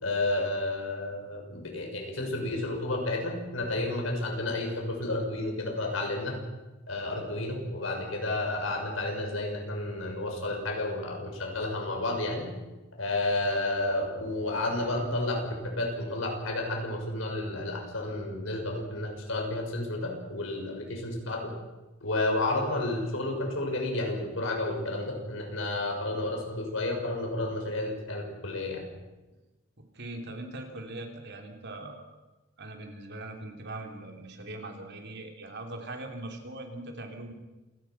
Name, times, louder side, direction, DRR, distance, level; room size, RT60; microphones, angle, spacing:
voice 1, 0.0-6.4 6.9-12.5 12.9-21.5 22.0-28.9, left 2 dB, 70° left, 2 dB, 6.1 m, -31 dB
voice 2, 29.8-32.2 32.6-37.3, right 2 dB, 60° right, 4 dB, 3.5 m, -41 dB
28.0 x 18.0 x 6.0 m, 1.1 s
head